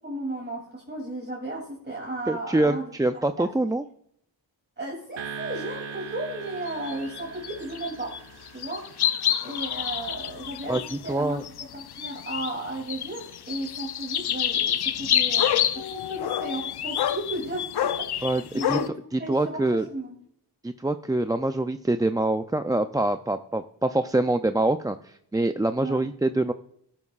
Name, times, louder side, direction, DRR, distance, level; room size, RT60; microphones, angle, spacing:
voice 1, 0.0-2.8 3.4-3.5 4.8-8.2 8.5-8.9 9.4-11.4 11.7-18.9 19.2-20.1 25.8-26.0, right 1 dB, 25° right, -3 dB, 3.0 m, -34 dB
voice 2, 2.3-3.8 10.7-11.4 18.2-18.4 18.7-18.8 19.1-19.9 20.6-26.5, right 2 dB, 10° right, 9 dB, 0.4 m, -25 dB
sound 1, 5.2-9.6, right 6 dB, 85° right, 1.2 m, -40 dB
sound 2, 6.7-8.2 8.5-12.6 12.9-18.9, left 10 dB, 60° left, 0.6 m, -28 dB
13.5 x 9.7 x 2.4 m, 0.68 s
cardioid pair, 50°, 44 cm